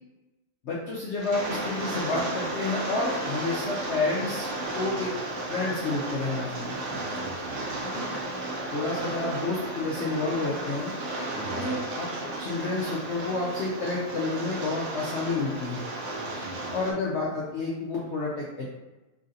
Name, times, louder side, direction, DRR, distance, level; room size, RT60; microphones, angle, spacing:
voice 1, 0.6-4.5 4.7-5.1 5.5-6.8 7.9-8.0 8.7-10.9 11.5-15.9 16.7-18.7, left 3 dB, 80° left, -4 dB, 0.6 m, -30 dB
Rain, 1.2-16.9, right 1 dB, 70° right, 0.7 m, -34 dB
voice 2, 6.9-8.1 11.3-11.8 16.2-16.8, right 3 dB, 85° right, 1 dB, 1.4 m, -43 dB
3.2 x 2.5 x 3.9 m, 1.1 s
omnidirectional pair, 1.9 m